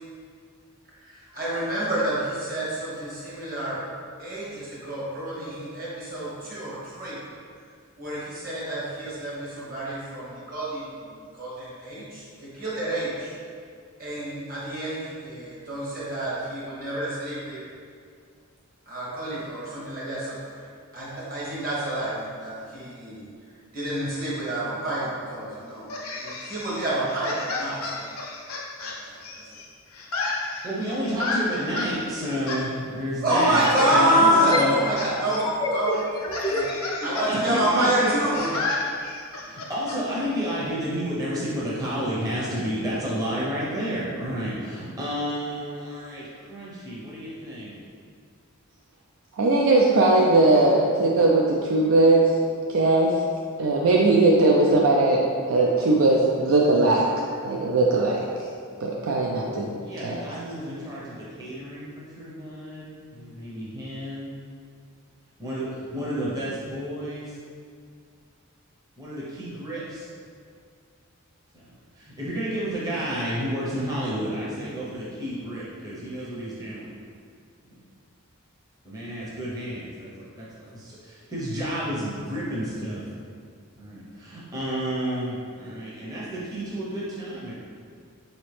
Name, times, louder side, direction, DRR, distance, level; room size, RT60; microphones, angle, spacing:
voice 1, 1.3-3.8 4.2-7.2 8.0-10.8 11.4-12.2 12.6-13.3 14.0-17.6 18.9-20.4 20.9-22.2 22.4-23.2 23.7-25.9 26.2-28.0 29.0-29.1 33.2-35.9 36.4-36.6 37.0-38.5, right 1 dB, 45° right, -7 dB, 1.1 m, -27 dB
sound 1, 25.9-29.6 29.9-31.9 32.5-32.6 33.3-34.0 34.3-35.1 35.3-35.4 35.9-40.0, left 3 dB, 80° left, 0.6 m, -32 dB
voice 2, 30.6-34.8 37.3-38.1 39.4-47.7 59.8-64.3 65.4-67.3 69.0-70.1 71.5-76.9 77.7-77.8 78.8-83.0 83.8-87.5, equal, 15° right, -8 dB, 0.7 m, -31 dB
sound 2, 31.9-32.0 33.4-37.3, left 2 dB, 20° left, 0.4 m, -29 dB
voice 3, 49.3-52.3 52.7-53.2 53.6-55.2 55.5-57.1 57.4-58.2 58.8-59.7 60.0-60.2, right 2 dB, 65° right, -2 dB, 0.3 m, -19 dB
4.1 x 2.8 x 3.2 m, 2.2 s
head